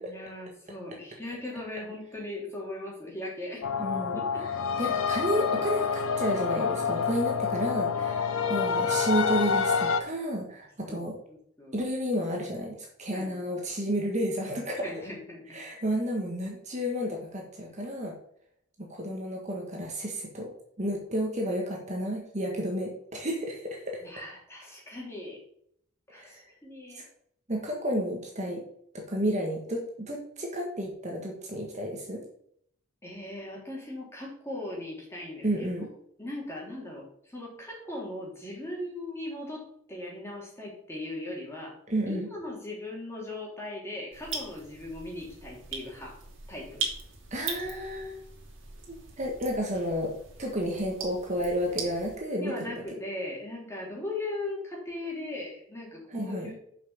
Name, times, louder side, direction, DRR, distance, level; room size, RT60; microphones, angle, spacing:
voice 1, 0.0-3.7 4.1-4.4 10.8-11.0 11.3-11.8 13.1-13.3 14.8-15.6 24.0-25.4 26.1-27.0 33.0-35.9 36.2-41.8 42.1-46.2 46.5-46.9 52.4-56.6, left 1 dB, 10° left, -3 dB, 3.1 m, -39 dB
sound 1, 3.6-10.0, left 5 dB, 85° left, 1.0 m, -27 dB
voice 2, 3.8-11.2 11.7-14.9 15.5-18.1 18.8-20.5 20.8-24.0 26.1-26.4 26.9-27.0 27.5-28.6 28.9-32.2 35.4-35.9 41.9-42.3 47.3-48.3 48.9-50.1 50.4-52.8 56.1-56.5, equal, 35° right, 0 dB, 1.5 m, -31 dB
sound 2, 44.1-52.2, right 5 dB, 65° right, 2.6 m, -40 dB
6.9 x 5.8 x 7.2 m, 0.68 s
head